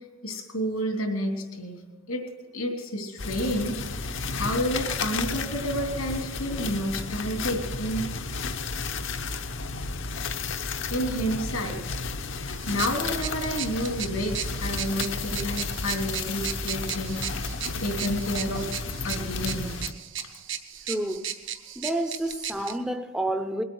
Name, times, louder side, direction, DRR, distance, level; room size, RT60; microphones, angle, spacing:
voice 1, 0.2-1.8 2.1-2.2 2.5-8.0 10.9-11.8 12.4-17.2 17.8-19.7, equal, 90° left, 3.0 m, -30 dB
sound 1, 3.2-19.9, left 4 dB, 60° left, 0.8 m, -32 dB
sound 2, 12.5-22.8, right 9 dB, 60° right, 0.9 m, -36 dB
voice 2, 20.9-21.3 21.8-23.6, right 1 dB, 5° right, 0.6 m, -29 dB
21.0 x 8.5 x 6.4 m
head